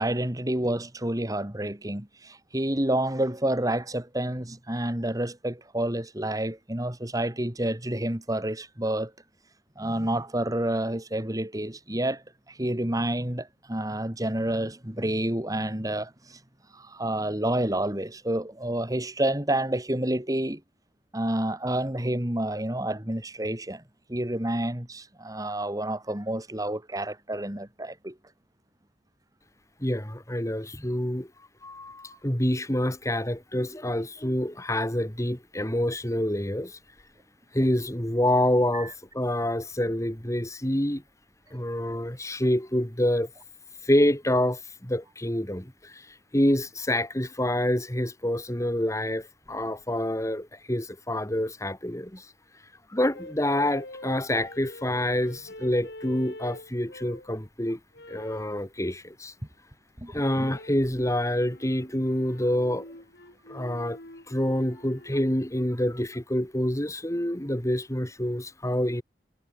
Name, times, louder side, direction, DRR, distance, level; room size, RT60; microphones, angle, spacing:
voice 1, 0.0-9.1 9.8-16.4 16.7-20.6 21.1-23.8 24.1-28.2 38.7-38.9 60.0-60.1, right 1 dB, 20° right, 2.4 m, -29 dB
voice 2, 29.8-31.3 31.6-36.8 37.5-41.0 41.5-43.3 43.8-46.1 46.3-52.3 52.9-57.8 58.1-59.3 60.1-62.9 63.5-64.0 64.3-69.0, left 1 dB, 15° left, 3.0 m, -27 dB
sound 1, 53.1-57.3 57.9-58.6 60.2-60.8 61.4-65.4, left 1 dB, 60° left, 5.2 m, -45 dB
head